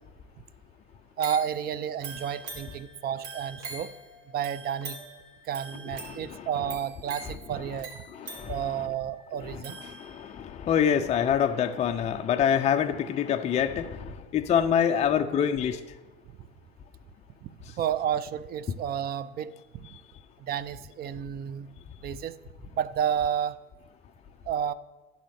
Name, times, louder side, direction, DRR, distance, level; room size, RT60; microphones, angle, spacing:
voice 1, 1.2-3.9 4.3-5.0 5.4-8.0 8.5-9.8 17.4-19.5 19.8-20.0 20.4-21.7 22.0-22.4 22.7-23.6 24.5-24.7, right 9 dB, 30° right, 16 dB, 0.5 m, -31 dB
sound 1, 1.2-10.5 10.9-11.0, right 3 dB, 60° right, 2.1 m, -44 dB
voice 2, 6.0-6.5 8.1-8.9 9.4-15.8, left 8 dB, 20° left, 7 dB, 0.4 m, -26 dB
11.5 x 4.2 x 7.8 m, 1.3 s
supercardioid pair, 105°, 30 cm